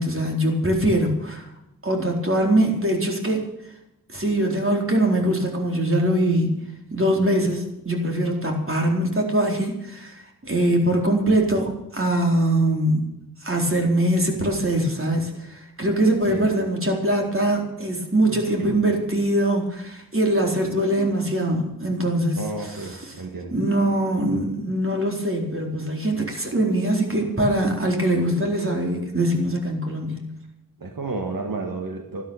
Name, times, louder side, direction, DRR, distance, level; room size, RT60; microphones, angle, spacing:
voice 1, 0.0-1.5 1.8-3.4 4.1-6.6 6.9-13.1 13.4-23.1 23.5-30.3, right 1 dB, 40° right, 1 dB, 4.2 m, -22 dB
voice 2, 18.3-18.8 22.4-23.6 30.8-32.2, right 3 dB, 80° right, 3 dB, 2.0 m, -31 dB
14.0 x 12.5 x 7.2 m, 0.85 s
wide cardioid pair, 70°, 34 cm